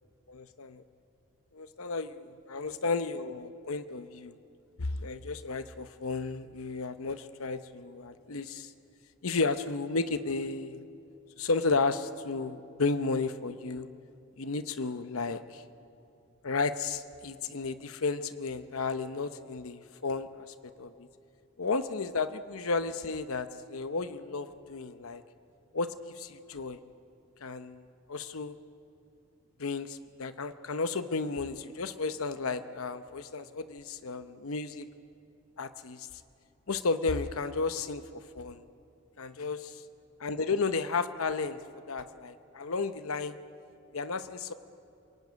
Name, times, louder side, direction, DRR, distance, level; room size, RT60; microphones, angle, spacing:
voice 1, 0.3-0.8 1.5-4.4 4.8-8.7 9.2-10.8 11.4-13.9 14.4-15.6 16.4-20.9 21.6-25.2 25.7-26.8 27.4-27.8 28.1-28.6 29.6-34.9 35.6-36.1 36.7-38.6 39.2-39.8 40.2-41.6 41.9-43.4 43.9-44.5, left 4 dB, 75° left, 11 dB, 0.8 m, -33 dB
28.0 x 17.0 x 9.6 m, 2.8 s
head